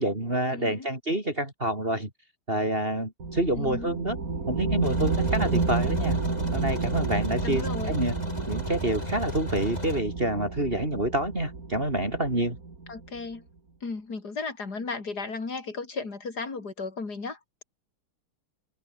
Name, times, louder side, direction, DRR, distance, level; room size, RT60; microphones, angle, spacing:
voice 1, 0.0-2.1 2.5-4.2 4.5-6.2 6.5-8.1 8.5-12.6, right 1 dB, 25° right, 5.5 m, -27 dB
voice 2, 0.5-0.9 3.5-3.9 7.4-8.0 12.9-13.5 13.8-17.4, left 4 dB, 50° left, 4.2 m, -35 dB
sound 1, 3.2-13.2, right 4 dB, 40° right, 3.4 m, -31 dB
sound 2, 4.8-10.0, left 1 dB, 20° left, 7.7 m, -36 dB
omnidirectional pair, 2.3 m